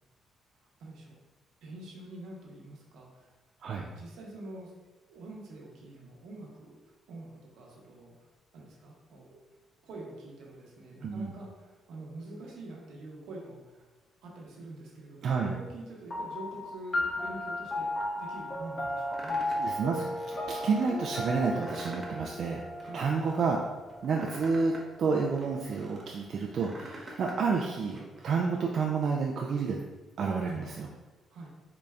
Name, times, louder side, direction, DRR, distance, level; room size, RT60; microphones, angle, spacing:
voice 1, 0.5-1.1 1.6-3.3 3.8-4.7 5.1-9.4 9.8-13.9 14.2-19.6 22.8-23.0 31.3-31.5, right 2 dB, 85° right, -2 dB, 0.9 m, -46 dB
voice 2, 15.2-15.5 19.6-20.1 20.5-22.6 22.9-23.6 24.0-29.8 30.2-30.9, right 5 dB, 60° right, -1 dB, 0.4 m, -30 dB
sound 1, 16.1-24.9, left 1 dB, 40° left, 0.8 m, -35 dB
sound 2, 19.1-19.7 20.2-20.9 21.4-22.3 22.6-23.4 23.9-26.0 26.4-27.4 27.7-28.4, right 1 dB, 30° right, 0.8 m, -47 dB
3.9 x 2.3 x 3.2 m, 1.2 s
cardioid pair, 90°, 0 cm